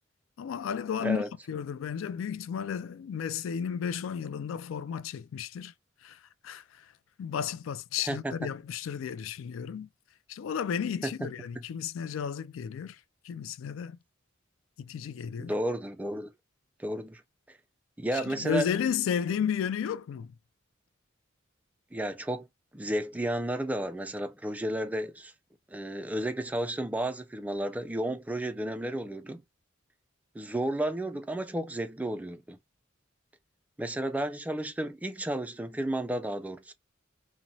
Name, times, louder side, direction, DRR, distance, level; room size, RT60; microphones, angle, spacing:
voice 1, 0.4-5.7 6.0-6.9 7.2-9.9 10.3-13.0 13.2-14.0 14.8-15.5 18.1-20.3, left 7 dB, 75° left, 0.3 m, -33 dB
voice 2, 15.4-16.3 16.8-17.2 18.0-18.7 21.9-22.5 22.7-25.3 25.7-29.4 30.4-32.6 33.8-36.7, right 1 dB, 10° right, 0.3 m, -32 dB
2.9 x 2.2 x 2.6 m
head